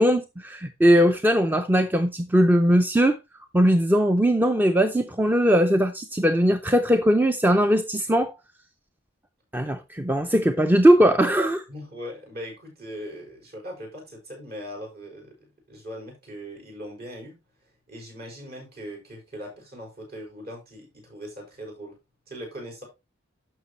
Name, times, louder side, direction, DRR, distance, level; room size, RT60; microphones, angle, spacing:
voice 1, 0.0-3.2 3.5-8.3 9.5-11.6, equal, 10° right, 0.4 m, -20 dB
voice 2, 11.7-15.3 15.7-17.4 17.9-22.0 22.3-22.8, equal, 50° right, 5.4 m, -40 dB
11.0 x 6.7 x 3.1 m
head